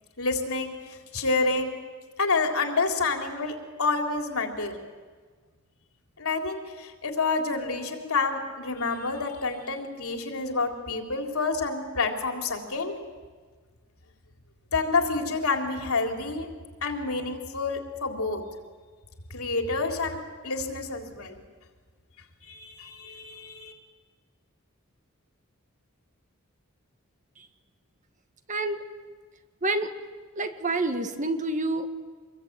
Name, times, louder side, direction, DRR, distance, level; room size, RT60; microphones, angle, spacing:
voice 1, 0.2-1.8 2.2-4.7 6.2-13.0 14.7-16.5 16.8-18.4 19.3-20.2 20.4-21.4 22.4-23.7, left 3 dB, 90° left, 3 dB, 3.7 m, -28 dB
voice 2, 28.5-28.8 29.6-29.9 30.4-32.0, right 2 dB, 35° right, 7 dB, 1.8 m, -28 dB
26.0 x 22.0 x 8.8 m, 1.5 s
head